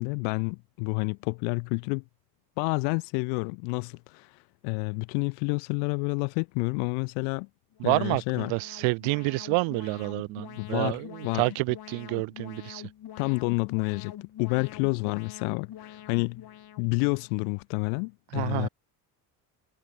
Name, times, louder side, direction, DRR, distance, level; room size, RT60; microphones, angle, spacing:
voice 1, 0.0-2.0 2.6-7.5 7.8-8.5 10.6-11.5 13.2-16.5 16.8-18.7, left 40 dB or more, 85° left, 0.8 m, -29 dB
Alarm, 7.7-17.6, left 11 dB, 50° left, 1.9 m, -45 dB
voice 2, 7.8-12.8 18.3-18.7, right 30 dB, 75° right, 0.7 m, -28 dB
hypercardioid pair, 65°, 46 cm